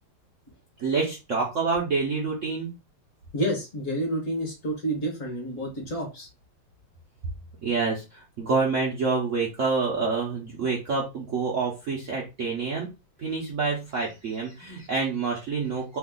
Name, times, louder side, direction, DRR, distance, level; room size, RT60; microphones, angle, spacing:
voice 1, 0.8-2.7 7.6-12.9 13.2-16.0, right 4 dB, 60° right, -2 dB, 0.8 m, -27 dB
voice 2, 3.3-6.3, right 1 dB, 45° left, 0 dB, 1.4 m, -29 dB
3.4 x 2.4 x 3.7 m, 0.27 s
omnidirectional pair, 2.1 m